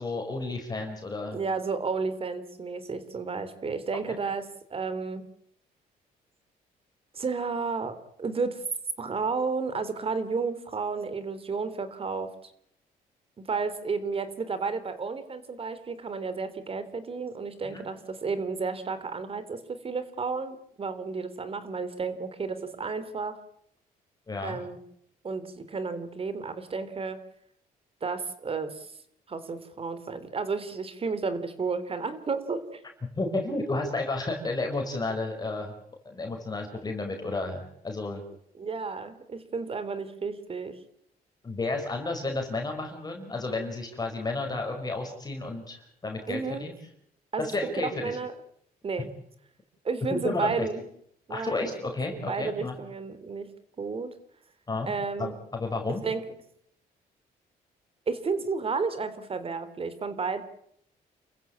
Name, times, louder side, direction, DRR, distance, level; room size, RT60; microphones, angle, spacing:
voice 1, 0.0-1.4 4.1-4.2 17.6-17.8 24.3-24.6 33.2-35.7 36.0-38.2 41.4-46.7 47.4-48.2 50.1-50.6 51.3-52.7 54.7-54.9 55.2-56.0, left 2 dB, 25° left, 2 dB, 5.1 m, -32 dB
voice 2, 1.3-5.3 7.1-8.6 9.0-12.5 13.4-23.4 24.4-24.8 25.2-27.2 28.0-28.9 29.3-32.8 38.5-40.8 46.3-46.7 47.3-47.5 47.8-48.3 48.8-49.1 49.8-50.8 51.3-53.5 53.8-54.1 54.8-55.3 56.0-56.2 58.1-60.4, right 4 dB, 35° right, 12 dB, 3.5 m, -32 dB
29.5 x 15.0 x 8.8 m, 0.73 s
cardioid pair, 105°, 16 cm